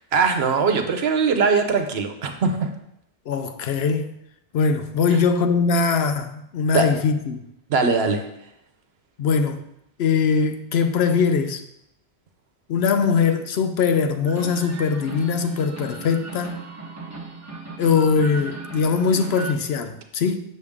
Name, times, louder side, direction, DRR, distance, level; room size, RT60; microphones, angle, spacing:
voice 1, 0.0-2.7 6.7-6.9 7.7-8.2, right 5 dB, 70° right, 1.0 m, -21 dB
voice 2, 3.3-4.2 4.5-7.4 9.2-9.6 10.0-11.6 12.7-16.6 17.8-20.4, left 5 dB, 75° left, 0.9 m, -21 dB
sound 1, 14.3-19.5, right 3 dB, 15° right, 1.1 m, -36 dB
6.7 x 6.4 x 3.6 m
omnidirectional pair, 1.1 m